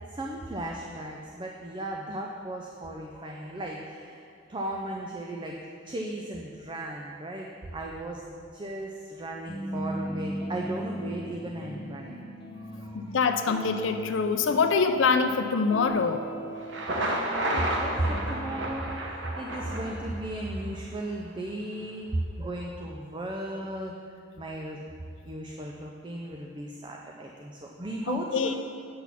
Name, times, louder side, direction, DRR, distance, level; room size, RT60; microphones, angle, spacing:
voice 1, 0.1-5.6 5.8-12.3 12.5-13.2 16.9-23.9 24.4-24.8 25.2-28.5, right 1 dB, 25° right, 0 dB, 0.5 m, -36 dB
sound 1, 9.5-15.3 15.7-16.8 18.0-18.5, equal, 25° left, 0.7 m, -38 dB
voice 2, 12.9-16.3 28.1-28.5, left 5 dB, 75° left, 7 dB, 0.5 m, -25 dB
Thunder, 16.6-20.5, right 1 dB, 65° right, 1.0 m, -31 dB
8.4 x 6.2 x 5.8 m, 2.3 s
head